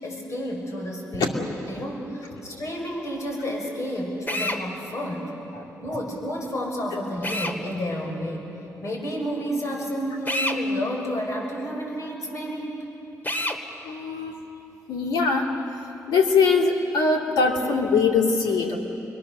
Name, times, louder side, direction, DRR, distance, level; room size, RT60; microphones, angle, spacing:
voice 1, 0.0-5.3 5.8-8.5 8.8-12.8, equal, 50° left, -1 dB, 6.3 m, -30 dB
Drill, 4.3-4.6 7.2-7.6 10.3-10.6 13.2-13.6, left 1 dB, 30° left, 2.2 m, -27 dB
voice 2, 13.8-14.3 14.9-15.5 16.1-18.8, left 4 dB, 90° left, 0 dB, 2.7 m, -21 dB
29.0 x 23.0 x 6.8 m, 3.0 s
cardioid pair, 60°, 7 cm